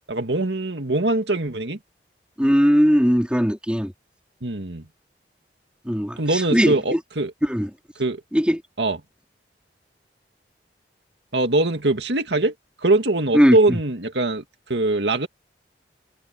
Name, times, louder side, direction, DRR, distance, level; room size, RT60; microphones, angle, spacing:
voice 1, 0.1-1.8 4.4-4.8 6.2-7.3 8.0-8.2 8.8-9.0 11.3-12.5 12.8-14.4 14.7-15.3, right 2 dB, 80° right, 2.2 m, -22 dB
voice 2, 2.4-3.9 5.8-7.0 7.4-7.7 8.3-8.6 13.3-13.8, equal, 5° right, 4.8 m, -19 dB
head